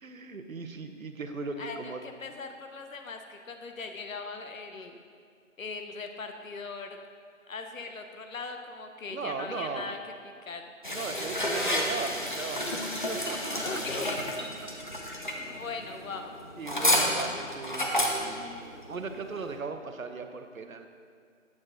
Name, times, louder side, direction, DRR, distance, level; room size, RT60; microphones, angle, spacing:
voice 1, 0.0-2.0 9.1-10.0 10.9-14.0 14.8-14.9 15.3-15.6 16.6-20.9, right 4 dB, 85° right, 7 dB, 0.9 m, -38 dB
voice 2, 1.6-5.0 5.6-7.0 7.5-10.0 10.4-10.6 13.6-14.2 15.5-16.3, left 4 dB, 80° left, 5 dB, 0.8 m, -39 dB
sound 1, 10.8-19.6, left 1 dB, 40° left, 0.7 m, -31 dB
8.5 x 6.6 x 3.8 m, 2.1 s
figure-of-eight pair, 175°, 40 cm